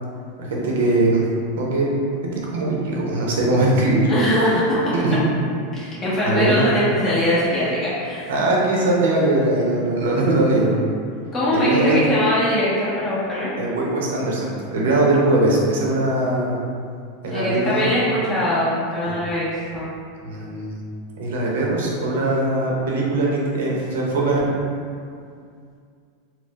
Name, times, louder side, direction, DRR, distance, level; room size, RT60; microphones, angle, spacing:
voice 1, 0.4-1.2 1.6-1.9 2.2-4.2 4.9-5.2 6.2-6.6 8.3-10.8 11.5-12.0 13.6-16.6 17.2-17.9 19.0-19.1 20.2-20.8 21.2-24.4, right 2 dB, 80° right, -3 dB, 0.6 m, -21 dB
voice 2, 4.1-4.9 5.7-8.3 11.3-13.5 17.3-19.9, equal, 25° left, -9 dB, 1.0 m, -21 dB
4.2 x 2.0 x 2.4 m, 2.3 s
supercardioid pair, 145°, 0 cm